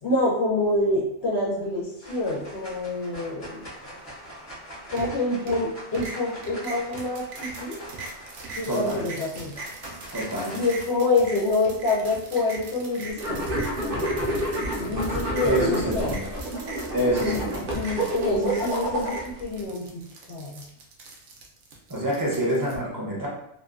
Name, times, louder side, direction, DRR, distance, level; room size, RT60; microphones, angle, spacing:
voice 1, 0.0-3.7 4.9-7.8 8.5-9.5 10.5-16.2 17.2-17.4 17.7-20.0 20.3-20.6, left 2 dB, 70° left, -6 dB, 1.0 m, -27 dB
sound 1, 1.3-1.7 2.0-10.8, equal, 35° left, 0.8 m, -43 dB
sound 2, 5.0-5.7 5.9-22.8, right 3 dB, 85° right, 0.9 m, -41 dB
voice 2, 8.7-9.1 10.1-10.6 15.4-16.2 16.9-17.6 21.9-23.3, right 1 dB, 25° right, -5 dB, 0.5 m, -26 dB
sound 3, 13.2-19.4, right 1 dB, 60° right, 0.7 m, -29 dB
2.7 x 2.2 x 2.4 m, 0.75 s
omnidirectional pair, 1.2 m